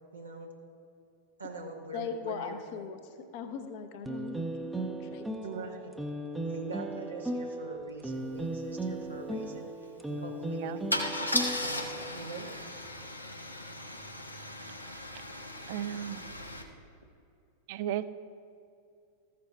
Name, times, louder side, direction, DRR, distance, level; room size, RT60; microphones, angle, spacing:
voice 1, 0.1-0.5 1.4-2.6 5.4-5.9 6.5-12.5, right 3 dB, 75° right, 0 dB, 0.9 m, -43 dB
voice 2, 1.9-5.3 5.5-5.6, left 6 dB, 45° left, 7 dB, 0.8 m, -40 dB
sound 1, 4.1-12.1, right 1 dB, 5° right, 0.7 m, -37 dB
Car / Engine starting / Idling, 8.3-8.4 8.7-8.9 10.9-16.6, left 1 dB, 85° left, 0.9 m, -36 dB
voice 3, 15.7-16.2 17.7-18.1, right 11 dB, 50° right, 14 dB, 0.4 m, -34 dB
14.5 x 6.7 x 3.4 m, 2.5 s
figure-of-eight pair, 90°, 0 cm